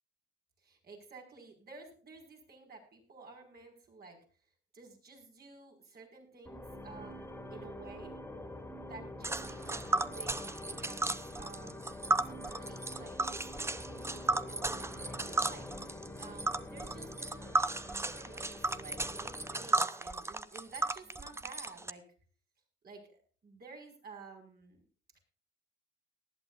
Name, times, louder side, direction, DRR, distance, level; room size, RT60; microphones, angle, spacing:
voice 1, 0.6-4.2 4.7-8.1 8.8-17.5 17.8-22.0 22.8-24.8, right 4 dB, 50° right, 2 dB, 5.6 m, -52 dB
sound 1, 6.5-19.8, left 1 dB, 10° left, 2.6 m, -46 dB
Tick, 9.2-21.9, right 2 dB, 15° right, 0.8 m, -34 dB
19.0 x 11.5 x 2.5 m, 0.41 s
cardioid pair, 90°, 20 cm